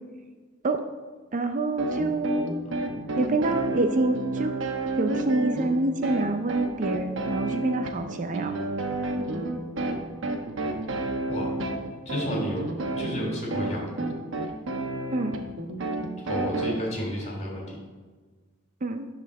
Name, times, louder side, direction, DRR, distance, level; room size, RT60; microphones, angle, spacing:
voice 1, 1.3-2.6 3.2-4.5 5.0-8.5 15.1-15.4 18.8-19.1, right 2 dB, 40° right, 7 dB, 0.5 m, -27 dB
sound 1, 1.8-16.7, right 2 dB, 75° right, 1.0 m, -30 dB
voice 2, 12.0-12.7 13.0-13.8 16.2-17.7, equal, 35° left, -2 dB, 3.2 m, -31 dB
11.0 x 4.3 x 6.6 m, 1.4 s
head